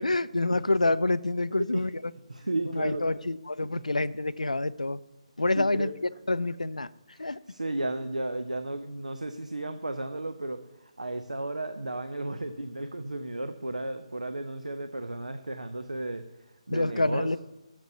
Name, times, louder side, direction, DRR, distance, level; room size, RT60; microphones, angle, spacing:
voice 1, 0.0-1.9 2.7-5.0 5.4-6.9 7.2-7.4 16.7-17.4, left 2 dB, 85° left, 18 dB, 0.3 m, -27 dB
voice 2, 2.3-3.0 5.5-5.9 7.1-16.2 16.7-17.4, right 2 dB, 85° right, 9 dB, 0.5 m, -34 dB
7.0 x 5.2 x 6.6 m, 0.96 s
figure-of-eight pair, 145°, 4 cm